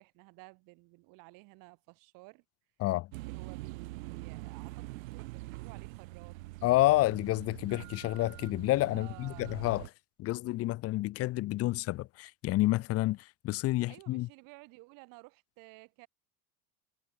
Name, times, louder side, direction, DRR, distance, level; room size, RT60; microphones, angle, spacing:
voice 1, 0.0-2.4 3.2-6.4 8.9-9.6 13.9-16.1, right 27 dB, 55° right, 4.4 m, -54 dB
voice 2, 2.8-3.1 6.6-9.8 10.2-14.3, left 17 dB, 35° left, 1.1 m, -29 dB
sound 1, 3.1-9.9, right 21 dB, 85° right, 3.2 m, -44 dB
cardioid pair, 160°, 40 cm